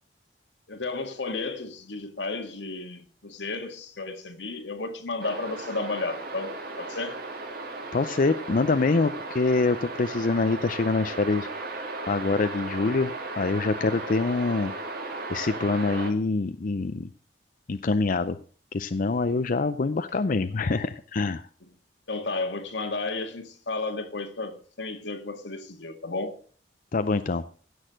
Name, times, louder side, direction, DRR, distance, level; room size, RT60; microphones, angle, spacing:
voice 1, 0.7-7.2 22.1-26.4, left 3 dB, 85° left, 1.9 m, -33 dB
sound 1, 5.2-16.1, right 3 dB, 60° right, 2.7 m, -36 dB
voice 2, 7.9-11.5 12.1-14.7 15.3-17.1 17.7-18.4 18.7-21.5 26.9-27.4, left 3 dB, 50° left, 0.5 m, -25 dB
16.5 x 6.4 x 6.3 m
head